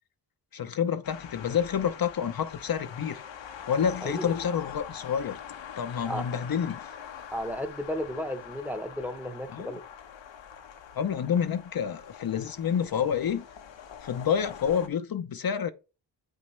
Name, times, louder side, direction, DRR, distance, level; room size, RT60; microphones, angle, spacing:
voice 1, 0.5-3.2 3.6-5.4 5.8-6.9 9.5-9.7 10.9-13.5 14.0-15.7, left 8 dB, 55° left, 0.7 m, -28 dB
sound 1, 1.0-14.9, left 8 dB, 85° left, 1.1 m, -44 dB
voice 2, 4.0-4.3 6.0-6.2 7.3-9.8, equal, 5° right, 0.9 m, -34 dB
8.1 x 5.4 x 3.2 m
cardioid pair, 85°, 43 cm